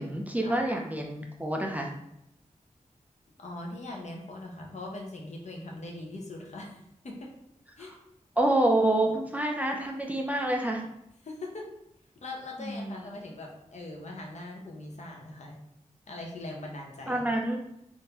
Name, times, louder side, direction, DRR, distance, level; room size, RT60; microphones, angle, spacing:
voice 1, 0.0-2.0 7.8-8.0 8.4-10.9 12.6-13.0 17.1-17.6, right 1 dB, 10° right, 1 dB, 0.4 m, -27 dB
voice 2, 3.4-7.3 7.8-7.9 11.2-11.6 12.2-15.6 16.1-17.2, left 2 dB, 65° left, 0 dB, 0.7 m, -41 dB
3.5 x 2.6 x 2.8 m, 0.80 s
wide cardioid pair, 105°, 13 cm